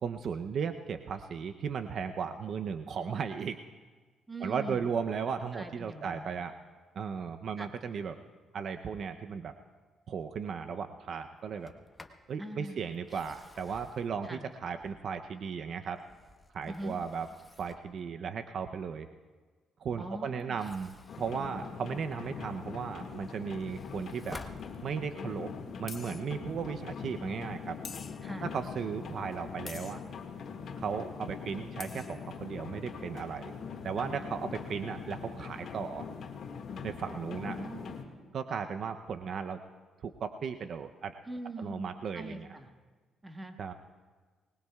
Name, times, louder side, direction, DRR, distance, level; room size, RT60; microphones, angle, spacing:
voice 1, 0.0-3.6 4.4-6.5 7.0-8.2 8.5-9.5 10.1-11.7 12.3-16.0 16.5-17.3 17.6-19.1 19.8-24.4 24.8-25.5 25.8-27.8 28.4-30.0 30.8-33.5 33.8-36.1 36.8-37.6 38.3-39.6 40.0-41.1 41.6-42.5 43.6-43.7, right 6 dB, 60° right, 7 dB, 0.6 m, -36 dB
voice 2, 4.3-4.9 5.5-6.3 7.6-7.7 12.4-13.0 14.2-14.5 16.7-17.0 20.0-20.6 28.2-28.5 37.3-37.9 41.2-42.7 43.2-43.5, right 1 dB, 20° right, 5 dB, 1.6 m, -42 dB
Sliding door, 11.5-12.3 12.9-15.3 15.8-18.0 20.4-22.3 22.8-25.3, left 2 dB, 20° left, 1.0 m, -52 dB
sound 1, 21.1-38.0, left 6 dB, 65° left, 1.8 m, -42 dB
sound 2, 24.6-24.7 25.9-26.3 27.8-28.4 29.7-30.1 31.5-31.6 31.8-32.3, left 5 dB, 40° left, 0.4 m, -46 dB
24.0 x 20.0 x 2.4 m, 1.4 s
cardioid pair, 90°, 0 cm